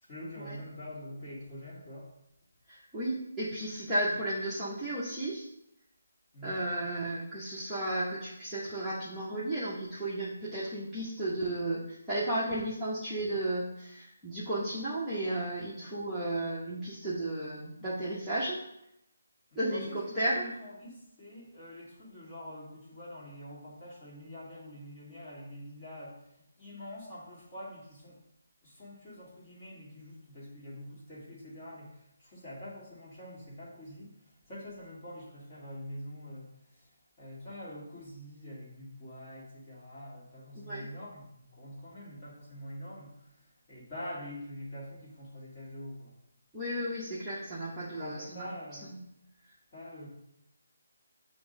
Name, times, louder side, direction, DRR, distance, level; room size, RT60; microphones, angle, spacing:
voice 1, 0.0-2.1 6.3-6.6 19.5-28.2 28.6-46.1 48.0-48.9 49.7-50.1, equal, 25° left, -6 dB, 2.0 m, -45 dB
voice 2, 2.7-5.5 6.4-18.6 19.5-20.4 40.5-40.9 46.5-48.5 48.9-49.0, right 1 dB, ahead, -13 dB, 0.9 m, -34 dB
7.6 x 2.6 x 5.1 m, 0.80 s
hypercardioid pair, 170°, 0 cm